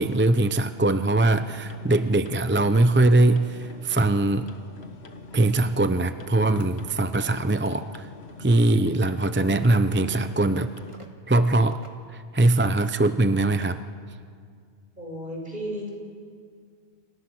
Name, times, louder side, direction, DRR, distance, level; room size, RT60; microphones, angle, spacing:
voice 1, 0.0-4.5 5.3-8.1 8.4-10.7 11.3-11.8 12.1-13.8, right 2 dB, 15° right, 10 dB, 0.6 m, -21 dB
sound 1, 1.3-11.0, left 4 dB, 75° left, 1.7 m, -44 dB
sound 2, 6.5-6.7 7.5-7.8 8.5-8.7 9.4-9.7 10.9-11.1 11.7-11.9 12.6-12.9 13.5-13.9, right 2 dB, 30° right, 2.1 m, -50 dB
voice 2, 15.0-15.9, equal, 50° right, -1 dB, 6.3 m, -33 dB
30.0 x 27.0 x 6.2 m, 2.2 s
omnidirectional pair, 1.1 m